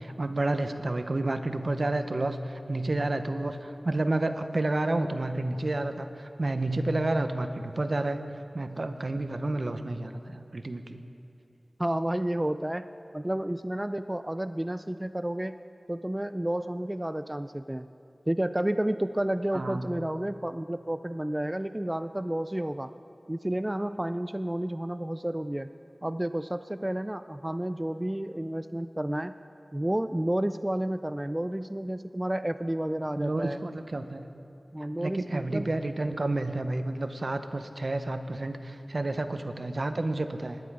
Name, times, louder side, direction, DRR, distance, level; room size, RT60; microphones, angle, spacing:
voice 1, 0.0-8.2 8.5-11.0 19.5-19.9 33.2-34.3 35.0-40.6, right 2 dB, 55° right, 9 dB, 0.7 m, -30 dB
voice 2, 11.8-15.6 15.9-17.9 18.3-22.9 23.3-25.7 26.0-29.3 29.7-33.6 34.7-35.7, right 1 dB, 15° right, 11 dB, 0.3 m, -31 dB
19.5 x 10.0 x 4.7 m, 2.8 s
wide cardioid pair, 60°, 0 cm